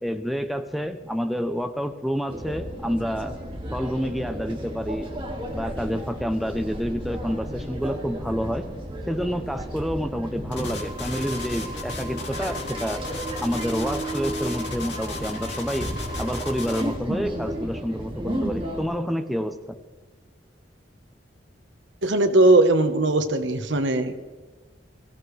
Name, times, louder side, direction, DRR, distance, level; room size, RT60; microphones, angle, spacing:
voice 1, 0.0-3.4 3.7-5.1 5.5-8.7 9.1-13.0 13.4-15.9 16.2-19.8, equal, ahead, 7 dB, 0.6 m, -28 dB
sound 1, 2.3-18.8, equal, 30° right, 2.1 m, -33 dB
sound 2, 10.5-16.9, left 2 dB, 65° left, 3.0 m, -35 dB
voice 2, 22.0-24.3, right 2 dB, 80° right, 8 dB, 1.2 m, -19 dB
21.5 x 15.5 x 3.3 m, 1.4 s
head